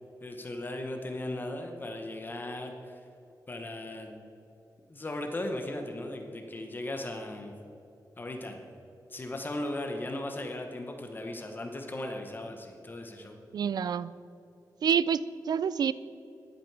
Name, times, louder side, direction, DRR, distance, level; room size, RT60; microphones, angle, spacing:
voice 1, 0.2-3.0 3.5-4.2 4.9-7.5 8.2-8.7 9.1-13.4, left 1 dB, 30° left, 3 dB, 0.9 m, -37 dB
voice 2, 13.5-14.1 14.8-15.9, right 7 dB, 70° right, 16 dB, 0.3 m, -27 dB
13.0 x 11.0 x 4.7 m, 3.0 s
wide cardioid pair, 175°, 7 cm